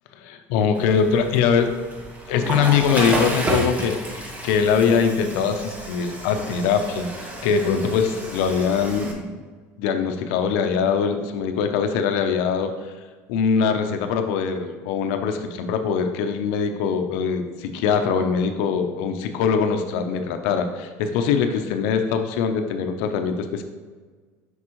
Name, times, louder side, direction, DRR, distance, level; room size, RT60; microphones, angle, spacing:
voice 1, 0.2-1.7 2.3-7.1 7.4-9.4 9.8-12.7 13.3-23.6, left 6 dB, 80° left, 7 dB, 0.7 m, -22 dB
Water / Toilet flush, 0.8-9.1, right 1 dB, 20° right, 1.0 m, -31 dB
6.1 x 5.4 x 3.1 m, 1.4 s
cardioid pair, 130°, 7 cm